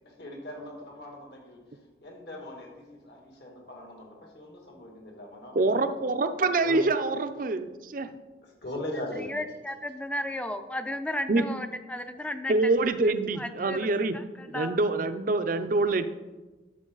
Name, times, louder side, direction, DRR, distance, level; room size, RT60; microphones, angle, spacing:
voice 1, 0.2-1.6 2.0-6.2 6.6-6.8 8.4-9.3 12.2-12.3, left 1 dB, 70° left, 0 dB, 2.4 m, -40 dB
voice 2, 5.5-8.1 11.3-11.4 12.5-14.2 14.5-16.1, right 3 dB, 50° right, 9 dB, 0.6 m, -25 dB
voice 3, 9.2-12.7 13.0-14.8, left 1 dB, 5° left, 9 dB, 0.5 m, -35 dB
11.0 x 7.3 x 4.0 m, 1.2 s
head